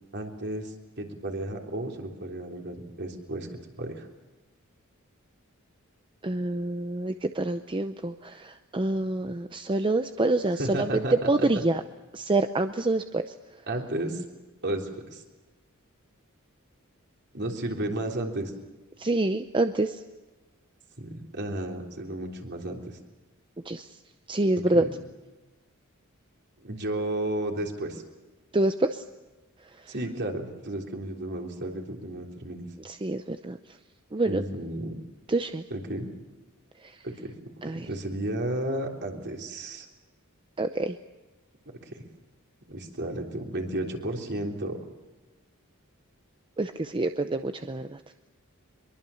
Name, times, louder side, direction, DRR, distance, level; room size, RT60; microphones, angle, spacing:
voice 1, 0.1-3.5 3.8-4.1 10.6-11.6 13.7-14.2 14.6-15.2 17.3-18.5 21.0-22.8 24.5-24.9 26.6-28.0 29.9-32.7 34.2-35.0 35.7-36.1 37.0-37.4 37.6-39.9 41.9-42.0 42.7-44.8, right 1 dB, 50° right, 2 dB, 3.6 m, -33 dB
voice 2, 6.2-11.0 11.3-11.8 12.1-13.2 19.0-20.0 23.7-23.8 24.3-24.8 28.5-29.0 32.8-33.6 34.1-34.4 35.3-35.6 37.6-37.9 40.6-40.9 46.6-48.0, right 2 dB, 25° right, 8 dB, 0.7 m, -26 dB
24.0 x 22.5 x 7.1 m, 1.2 s
head